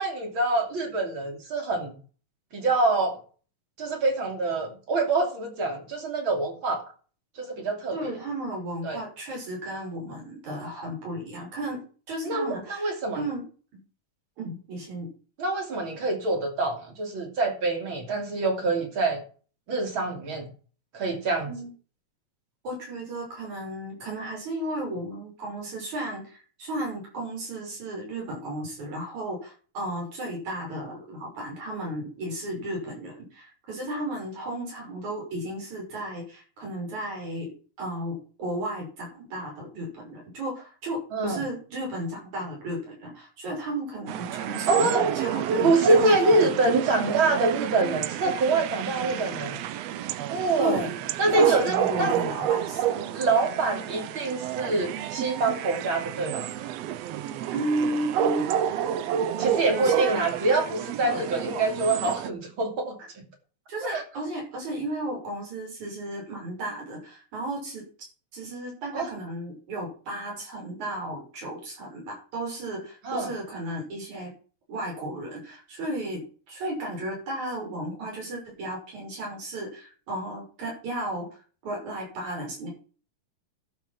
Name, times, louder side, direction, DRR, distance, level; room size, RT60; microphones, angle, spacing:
voice 1, 0.0-2.0 2.5-3.2 3.8-6.8 7.4-8.2 8.8-9.0 12.2-13.2 15.4-19.2 19.7-20.4 20.9-21.5 41.1-41.4 44.7-45.0 45.6-49.6 50.3-50.9 51.2-52.2 53.1-56.5 59.4-63.2 63.8-64.0 68.9-69.1 73.0-73.3, right 2 dB, 40° right, 4 dB, 3.2 m, -25 dB
voice 2, 7.9-11.8 12.1-13.4 13.7-13.8 14.4-15.1 21.5-21.7 22.6-46.7 50.6-50.9 51.2-53.0 57.5-59.0 59.3-60.2 61.0-61.2 63.7-67.8 68.3-74.3 74.7-81.3 81.6-82.7, right 1 dB, 60° right, -2 dB, 7.7 m, -34 dB
sound 1, 44.1-62.3, right 11 dB, 85° right, 1.5 m, -29 dB
12.5 x 7.0 x 6.0 m, 0.39 s
omnidirectional pair, 3.8 m